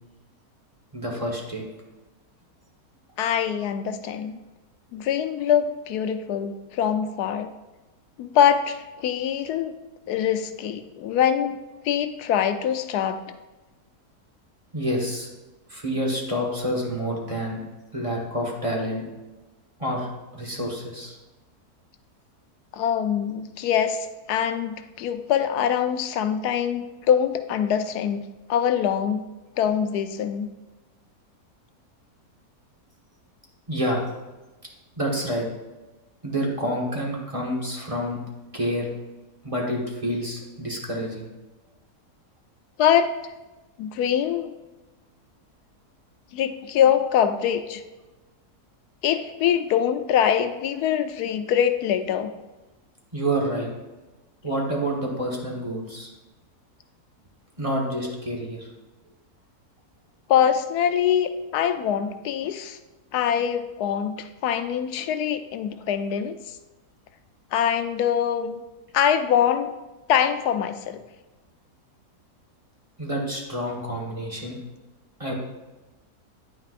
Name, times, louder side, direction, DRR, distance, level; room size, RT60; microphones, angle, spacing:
voice 1, 0.9-1.6 14.7-15.3 15.7-17.6 17.9-19.0 19.8-20.1 20.3-21.2 33.7-34.0 35.0-35.5 36.2-38.2 38.5-38.9 39.4-41.3 53.1-53.7 54.4-56.1 57.6-58.7 73.0-74.6 75.2-75.3, equal, 25° right, -2 dB, 1.3 m, -28 dB
voice 2, 3.2-4.4 4.9-7.5 8.2-9.7 10.1-11.6 11.8-13.2 22.7-29.2 29.6-30.5 42.8-43.1 43.8-44.5 46.3-47.8 49.0-52.3 60.3-62.8 63.1-66.6 67.5-68.6 68.9-69.7 70.1-71.0, left 9 dB, 85° left, 9 dB, 1.1 m, -23 dB
9.9 x 8.8 x 2.5 m, 1.1 s
omnidirectional pair, 1.6 m